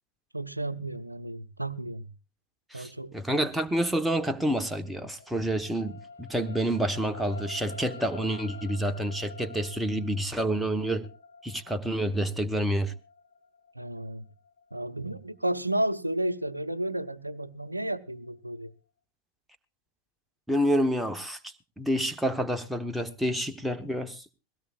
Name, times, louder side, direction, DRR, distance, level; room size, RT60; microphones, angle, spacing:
voice 1, 0.3-2.1 2.7-3.1 13.7-14.3 14.7-18.7, right 1 dB, 85° right, 0.7 m, -32 dB
voice 2, 2.7-11.1 11.4-12.9 20.5-24.2, right 1 dB, 5° right, 1.1 m, -28 dB
sound 1, 4.4-16.7 17.2-17.4, left 3 dB, 70° left, 1.1 m, -48 dB
21.5 x 17.0 x 2.4 m
figure-of-eight pair, 90°, 0 cm